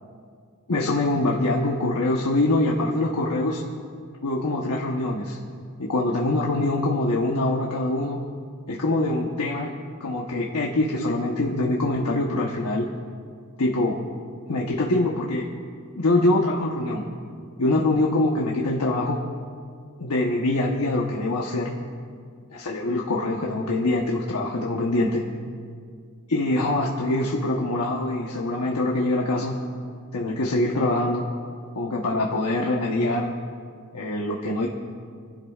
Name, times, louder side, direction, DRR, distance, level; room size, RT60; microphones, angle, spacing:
voice 1, 0.7-3.6 4.2-5.4 5.8-8.2 8.7-9.7 10.0-12.9 13.6-14.0 14.5-15.4 15.9-17.0 17.6-19.2 20.0-21.7 22.5-25.2 26.3-29.6 30.1-31.3 31.7-33.3 33.9-34.7, left 2 dB, 85° left, -2 dB, 1.1 m, -24 dB
29.0 x 11.5 x 2.4 m, 2.2 s
head